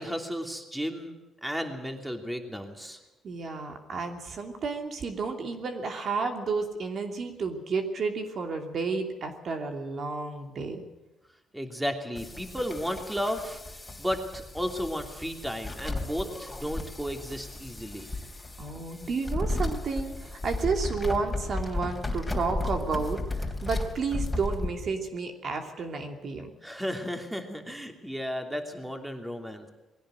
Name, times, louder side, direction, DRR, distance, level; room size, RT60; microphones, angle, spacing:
voice 1, 0.0-3.0 11.5-18.1 26.6-29.7, equal, 5° right, 5 dB, 2.9 m, -34 dB
voice 2, 3.2-10.8 18.6-23.2 23.6-26.5, right 4 dB, 55° right, 5 dB, 2.8 m, -31 dB
sound 1, 12.2-24.7, left 2 dB, 10° left, 3.4 m, -34 dB
21.0 x 16.5 x 7.8 m, 1.0 s
cardioid pair, 100°, 0 cm